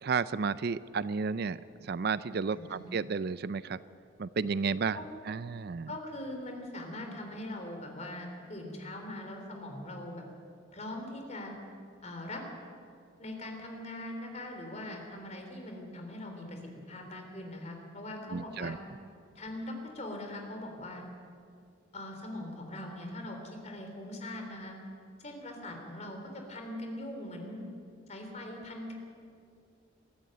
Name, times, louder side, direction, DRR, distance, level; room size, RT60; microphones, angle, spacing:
voice 1, 0.0-3.8 4.2-5.0 5.3-5.9 18.3-18.8, right 5 dB, 55° right, 16 dB, 0.4 m, -32 dB
voice 2, 5.9-10.2 10.7-11.5 12.0-12.4 13.2-16.6 16.9-18.8 19.4-21.0 21.9-24.8 25.2-27.7 28.1-28.9, left 1 dB, 35° left, 3 dB, 3.5 m, -41 dB
22.5 x 13.5 x 9.1 m, 2.3 s
head